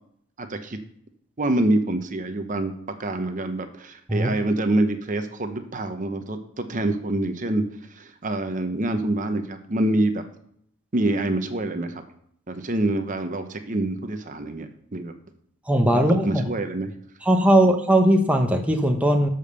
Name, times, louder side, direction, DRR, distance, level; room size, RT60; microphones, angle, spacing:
voice 1, 0.4-0.8 1.4-2.7 3.0-7.6 8.0-10.2 10.9-12.0 12.5-15.1 15.9-16.9, right 1 dB, 35° right, 8 dB, 0.8 m, -26 dB
voice 2, 15.7-16.4 17.2-19.3, right 1 dB, 5° right, 3 dB, 0.8 m, -19 dB
12.0 x 5.2 x 6.7 m, 0.69 s
head